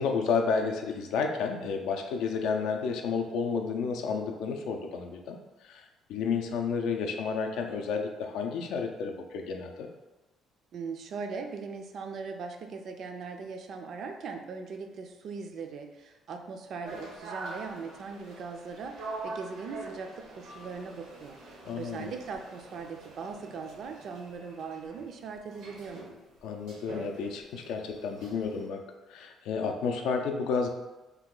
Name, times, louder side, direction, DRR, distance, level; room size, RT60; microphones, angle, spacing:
voice 1, 0.0-5.4 5.7-5.8 6.1-9.9 21.6-22.1 26.4-28.8 29.1-30.7, left 5 dB, 85° left, 4 dB, 0.4 m, -31 dB
voice 2, 10.7-21.4 21.8-26.0, right 5 dB, 55° right, 4 dB, 0.4 m, -40 dB
sound 1, 16.8-28.7, right 2 dB, 80° right, 0.7 m, -45 dB
2.7 x 2.2 x 3.7 m, 1.1 s
cardioid pair, 125°, 0 cm